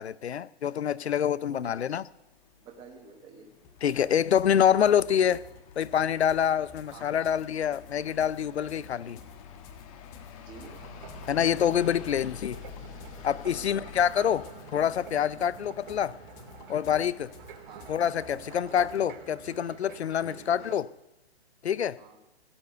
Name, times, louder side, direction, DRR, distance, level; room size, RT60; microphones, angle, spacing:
voice 1, 0.0-2.0 3.8-5.4 5.8-9.2 11.3-12.6 13.2-16.2 16.7-17.3 17.9-20.9 21.6-22.0, left 9 dB, 85° left, 0.6 m, -26 dB
sound 1, 1.9-19.7, left 8 dB, 30° left, 1.2 m, -50 dB
voice 2, 2.6-3.5 6.9-7.1 10.4-10.7 13.5-13.9 17.7-17.9 18.5-18.8 20.3-20.5 22.0-22.2, right 5 dB, 15° right, 1.3 m, -50 dB
sound 2, 3.6-19.0, left 5 dB, 10° left, 0.4 m, -53 dB
sound 3, 10.5-20.8, right 7 dB, 50° right, 2.0 m, -48 dB
16.5 x 7.0 x 8.0 m
hypercardioid pair, 150°, 32 cm